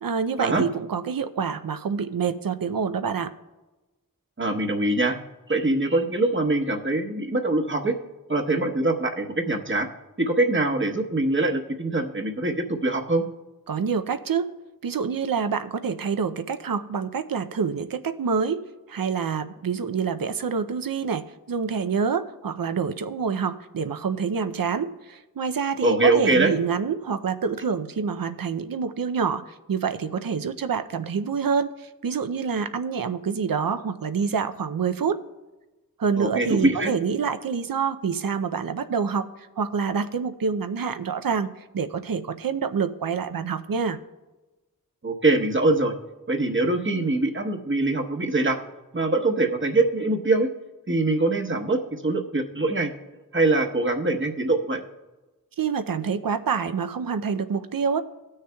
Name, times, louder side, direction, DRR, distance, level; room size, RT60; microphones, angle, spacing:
voice 1, 0.0-3.3 13.7-14.5 14.8-35.2 36.0-44.0 55.6-58.0, right 6 dB, 75° right, 10 dB, 0.6 m, -27 dB
voice 2, 4.4-5.2 5.5-7.9 8.3-9.9 10.2-13.2 25.8-26.5 36.2-36.9 45.0-45.9 46.3-48.6 48.9-50.5 50.9-52.9 53.3-54.8, right 2 dB, 35° right, 3 dB, 1.0 m, -23 dB
18.5 x 6.5 x 2.3 m, 1.1 s
wide cardioid pair, 45°, 35 cm